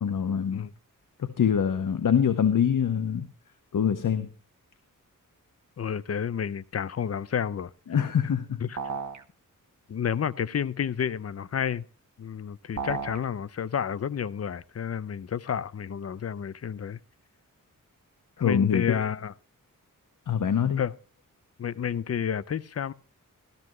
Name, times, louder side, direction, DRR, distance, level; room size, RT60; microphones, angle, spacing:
voice 1, 0.0-0.7 1.2-3.3 3.7-4.3 7.9-8.6 18.4-18.8 20.3-20.8, left 8 dB, 70° left, 0.9 m, -24 dB
voice 2, 5.8-7.7 8.6-8.8 9.9-11.8 12.2-17.0 18.4-19.3 20.8-20.9 21.6-22.9, left 8 dB, 50° left, 0.5 m, -30 dB
sound 1, 8.8-9.2 12.8-13.2, right 5 dB, 60° right, 1.0 m, -33 dB
13.0 x 13.0 x 3.1 m
wide cardioid pair, 95°, 33 cm